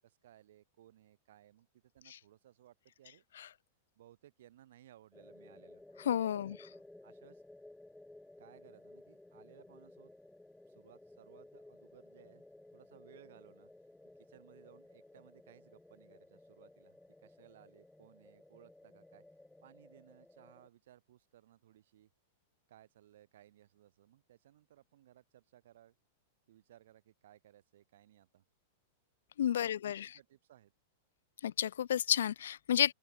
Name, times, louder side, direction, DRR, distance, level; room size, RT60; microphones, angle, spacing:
voice 1, 0.0-3.2 4.0-5.8 6.4-6.6 7.0-7.4 8.4-10.1 10.7-12.4 12.7-13.7 14.2-17.0 17.2-19.2 19.6-22.1 22.7-26.0 26.5-28.4 29.6-30.7, right 12 dB, 70° right, 7.1 m, -62 dB
sound 1, 5.1-20.7, left 2 dB, 5° left, 2.2 m, -57 dB
voice 2, 6.1-6.6 29.4-30.1 31.4-32.9, left 10 dB, 90° left, 0.3 m, -31 dB
supercardioid pair, 160°, 0 cm